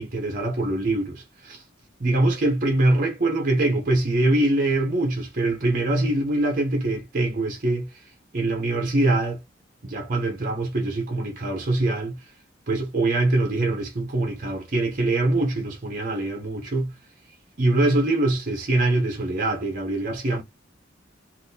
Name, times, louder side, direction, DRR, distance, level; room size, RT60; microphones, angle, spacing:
voice 1, 0.0-1.6 2.0-7.9 8.3-9.4 9.8-12.2 12.7-16.9 17.6-20.4, right 2 dB, 45° right, 0.7 m, -23 dB
3.5 x 2.5 x 2.6 m
head